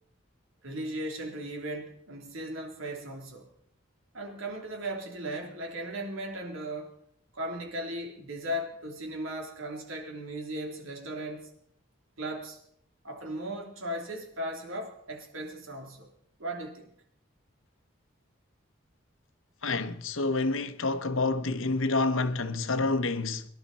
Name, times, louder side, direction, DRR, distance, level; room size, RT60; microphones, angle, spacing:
voice 1, 0.6-3.5 4.1-6.9 7.3-11.5 12.2-12.6 13.0-16.1 16.4-16.9, right 1 dB, 85° right, 3.5 m, -37 dB
voice 2, 19.6-23.5, left 3 dB, 75° left, 1.1 m, -28 dB
23.5 x 11.5 x 4.3 m
head